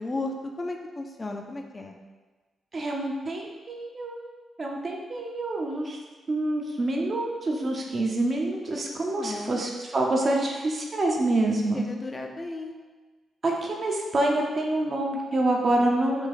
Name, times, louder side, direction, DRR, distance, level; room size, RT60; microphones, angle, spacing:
voice 1, 0.0-1.9 9.1-9.6 11.7-12.7, left 2 dB, 35° left, 2 dB, 0.5 m, -34 dB
voice 2, 2.7-4.2 4.6-6.0 6.3-11.8 13.4-16.3, right 2 dB, 45° right, 0 dB, 0.7 m, -26 dB
3.3 x 2.4 x 3.8 m, 1.3 s
hypercardioid pair, 45°, 0 cm